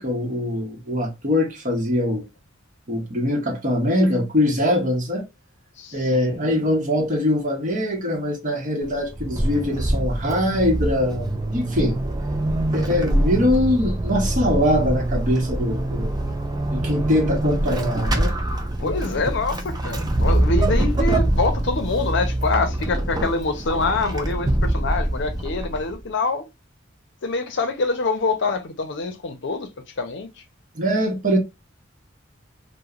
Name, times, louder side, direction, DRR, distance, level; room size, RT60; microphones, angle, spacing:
voice 1, 0.0-2.2 2.9-5.3 5.9-12.0 12.7-16.1 16.7-18.3 18.8-18.9 30.7-31.4, left 1 dB, 40° right, 0.8 m, -22 dB
voice 2, 5.8-6.4 18.8-26.5 27.2-30.3, left 3 dB, 65° left, 0.6 m, -25 dB
Vehicle / Accelerating revving vroom / Squeak, 8.8-26.0, right 1 dB, 20° right, 0.4 m, -24 dB
3.0 x 2.1 x 2.4 m
head